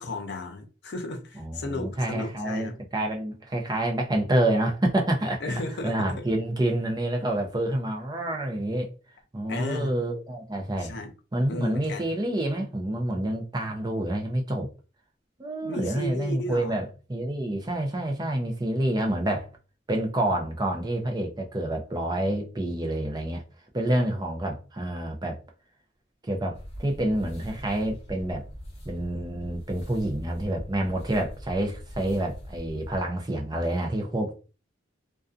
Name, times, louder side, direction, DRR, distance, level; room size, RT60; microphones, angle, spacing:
voice 1, 0.0-2.7 5.4-6.2 9.5-9.9 10.8-11.1 11.5-12.1 15.6-16.8, left 2 dB, 60° left, 0.6 m, -34 dB
voice 2, 1.4-5.4 5.8-8.9 9.3-11.0 11.3-14.7 15.4-19.5 19.9-23.4 23.7-25.4 26.2-28.5 28.9-34.3, right 1 dB, 20° right, 0.5 m, -28 dB
sound 1, 26.5-33.0, equal, 30° left, 1.0 m, -42 dB
2.6 x 2.3 x 2.4 m
head